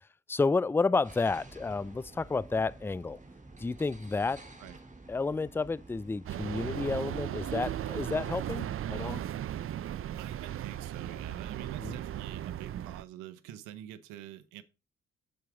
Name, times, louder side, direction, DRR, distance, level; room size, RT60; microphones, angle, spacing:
voice 1, 0.3-3.2 3.6-4.4 5.1-9.2 11.8-11.9, left 4 dB, 10° left, 0.4 m, -31 dB
sound 1, 1.0-8.9, right 2 dB, 25° right, 2.6 m, -51 dB
sound 2, 6.3-13.0, right 11 dB, 45° right, 0.5 m, -36 dB
voice 2, 10.2-14.6, right 11 dB, 80° right, 0.8 m, -46 dB
7.4 x 7.1 x 5.0 m
hypercardioid pair, 45°, 30 cm